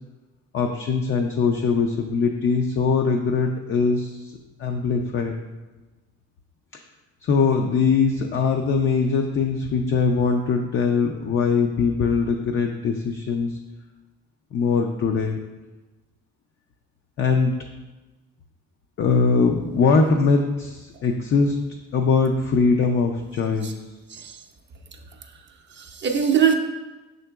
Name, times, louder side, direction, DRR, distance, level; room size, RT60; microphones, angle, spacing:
voice 1, 0.5-4.3 4.6-5.4 7.2-13.6 14.5-15.4 17.2-17.5 19.0-21.6 21.9-23.7, left 4 dB, 45° left, 3 dB, 0.4 m, -21 dB
voice 2, 24.1-24.4 25.7-26.5, right 8 dB, 40° right, 4 dB, 0.5 m, -22 dB
5.6 x 3.8 x 2.3 m, 1.2 s
cardioid pair, 90°, 30 cm